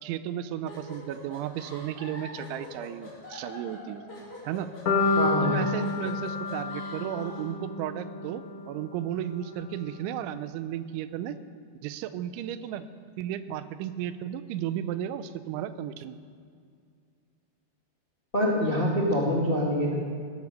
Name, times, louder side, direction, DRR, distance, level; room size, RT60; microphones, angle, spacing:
voice 1, 0.0-4.0 4.4-4.7 5.4-11.4 11.8-12.8 13.2-16.2, right 10 dB, 85° right, 12 dB, 3.1 m, -34 dB
sound 1, 0.7-7.5, left 2 dB, 30° left, 5.8 m, -44 dB
sound 2, 4.9-9.0, left 3 dB, 80° left, 1.4 m, -29 dB
voice 2, 5.2-5.6 18.3-19.9, equal, 55° left, -3 dB, 0.6 m, -25 dB
18.0 x 12.0 x 6.7 m, 2.2 s
omnidirectional pair, 5.3 m